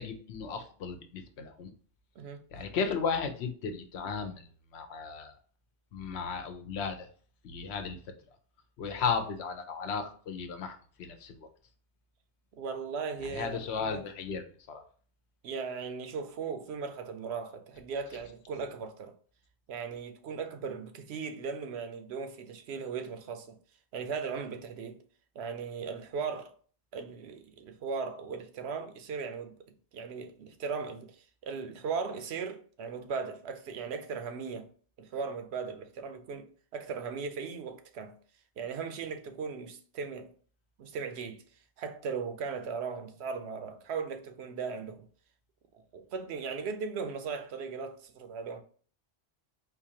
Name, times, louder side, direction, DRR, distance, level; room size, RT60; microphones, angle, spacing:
voice 1, 0.0-1.7 2.5-4.5 4.7-5.3 5.9-7.1 7.4-8.0 8.8-11.4 13.3-14.8, left 5 dB, 90° left, 1.0 m, -35 dB
voice 2, 12.6-14.0 15.4-19.2 19.7-23.6 23.9-25.0 25.3-26.5 26.9-29.6 29.9-34.7 35.0-38.2 38.6-40.3 40.8-41.4 41.8-45.1 45.7-48.6, right 5 dB, 85° right, 0.9 m, -38 dB
4.0 x 2.6 x 2.8 m
omnidirectional pair, 1.1 m